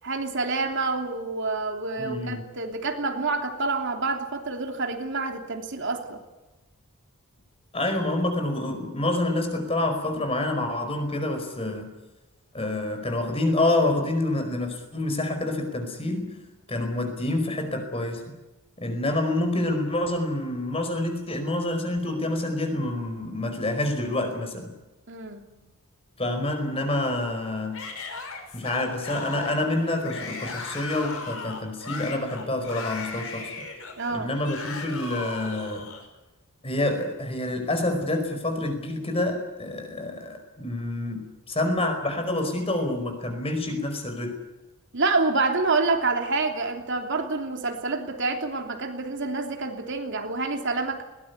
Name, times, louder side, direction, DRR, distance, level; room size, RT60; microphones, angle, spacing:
voice 1, 0.0-6.2 25.1-25.4 34.0-34.3 44.9-51.0, right 3 dB, 55° right, 4 dB, 3.1 m, -27 dB
voice 2, 2.0-2.4 7.7-11.9 12.5-16.4 16.7-18.3 18.8-24.7 26.2-27.8 28.5-33.5 34.1-35.9 36.6-44.3, left 1 dB, 25° left, 6 dB, 4.9 m, -27 dB
Yell / Screaming, 27.7-36.0, left 4 dB, 70° left, 5.7 m, -37 dB
21.0 x 19.0 x 9.5 m, 1.1 s
head